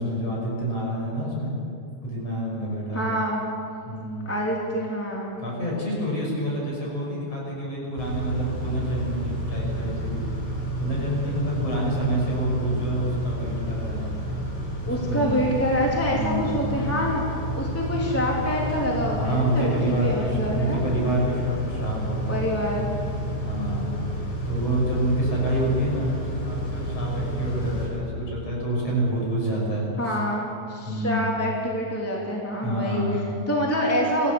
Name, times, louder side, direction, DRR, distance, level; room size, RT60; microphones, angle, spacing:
voice 1, 0.0-1.5 2.0-3.0 3.9-4.5 5.4-10.3 10.8-14.1 14.8-15.3 16.0-16.7 19.2-22.4 23.4-23.9 24.5-30.2 30.9-31.3 32.6-33.3, right 1 dB, 35° left, -3 dB, 7.2 m, -28 dB
voice 2, 2.9-3.4 4.2-5.4 14.8-17.2 17.5-19.7 20.0-20.9 22.3-22.9 30.0-33.0 33.5-34.3, equal, 5° left, -3 dB, 2.1 m, -26 dB
Car / Idling / Accelerating revving vroom, 8.0-27.9, equal, 90° left, 7.0 m, -30 dB
26.0 x 16.0 x 7.2 m, 2.5 s
omnidirectional pair, 4.8 m